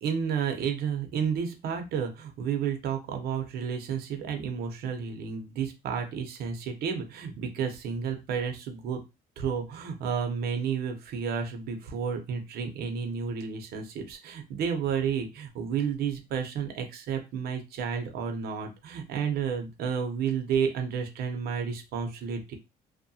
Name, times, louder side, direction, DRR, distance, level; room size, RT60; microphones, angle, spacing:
voice 1, 0.0-9.0 9.4-22.5, right 7 dB, 70° right, 4 dB, 0.7 m, -31 dB
2.8 x 2.1 x 2.7 m, 0.26 s
cardioid pair, 110°, 17 cm